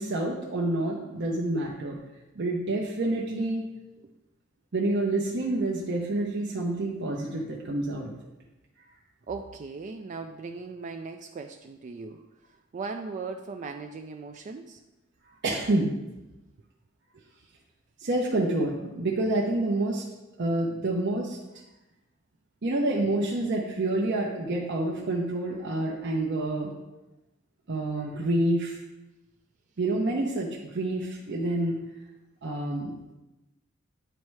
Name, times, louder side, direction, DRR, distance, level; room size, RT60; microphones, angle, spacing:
voice 1, 0.0-2.0 2.4-3.6 4.7-8.1 15.4-15.9 18.0-20.0 20.4-21.4 22.6-26.7 27.7-28.8 29.8-31.8 32.4-33.1, right 2 dB, 55° right, -2 dB, 0.8 m, -28 dB
voice 2, 9.3-12.3 12.7-14.8, right 4 dB, 35° right, 5 dB, 0.3 m, -38 dB
8.9 x 3.2 x 4.6 m, 1.0 s
head